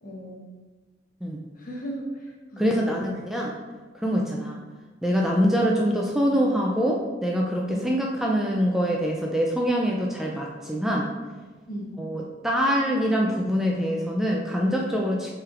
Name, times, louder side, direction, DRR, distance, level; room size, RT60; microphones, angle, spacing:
voice 1, 0.0-0.4 1.6-3.0 4.1-4.5 7.7-7.9 11.7-12.0, right 1 dB, 50° left, -2 dB, 0.9 m, -36 dB
voice 2, 2.6-3.5 3.9-4.6 5.0-11.1 12.0-15.3, equal, ahead, -2 dB, 0.3 m, -24 dB
5.7 x 3.3 x 2.4 m, 1.3 s
head